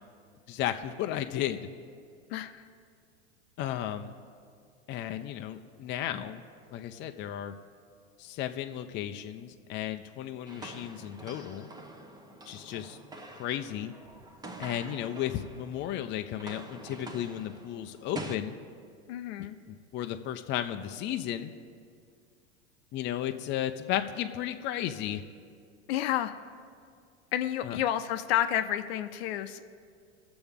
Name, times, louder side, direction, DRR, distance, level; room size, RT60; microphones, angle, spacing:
voice 1, 0.5-1.6 3.6-4.1 4.9-6.4 6.7-7.5 8.2-11.7 12.5-13.0 13.3-13.9 14.6-18.5 19.4-21.5 22.9-25.2 27.6-27.8, left 11 dB, 35° left, 7 dB, 0.5 m, -34 dB
voice 2, 2.3-2.6 19.1-19.6 25.9-26.3 27.3-29.6, left 11 dB, 65° left, 9 dB, 0.7 m, -30 dB
sound 1, 10.5-15.9 16.2-18.4, right 2 dB, 10° right, 0.8 m, -45 dB
20.0 x 7.0 x 3.5 m, 2.2 s
supercardioid pair, 115°, 33 cm